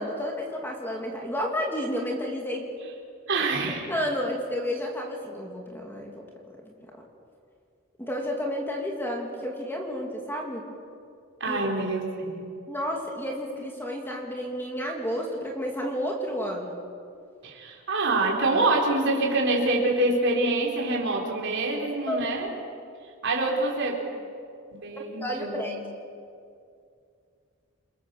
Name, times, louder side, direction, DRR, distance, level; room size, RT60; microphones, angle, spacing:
voice 1, 0.0-2.6 3.9-6.2 6.6-7.0 8.0-10.6 11.4-11.7 12.7-16.8 22.1-22.2 25.0-25.8, equal, 10° left, 0 dB, 2.6 m, -31 dB
voice 2, 3.3-3.9 11.4-12.5 17.4-22.5 23.2-24.0 24.7-25.6, right 2 dB, 55° right, -1 dB, 4.4 m, -26 dB
29.5 x 21.0 x 7.1 m, 2.4 s
head